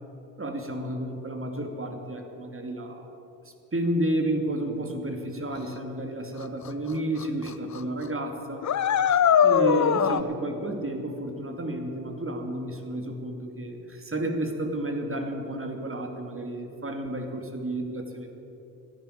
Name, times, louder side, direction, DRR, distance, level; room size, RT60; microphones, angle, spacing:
voice 1, 0.4-3.1 3.7-8.7 9.4-18.3, right 1 dB, 30° right, 4 dB, 2.5 m, -31 dB
sound 1, 6.7-6.8 7.2-7.5 7.7-7.8 8.6-10.2, left 8 dB, 40° left, 0.7 m, -21 dB
12.5 x 10.5 x 10.0 m, 2.9 s
hypercardioid pair, 50°, 43 cm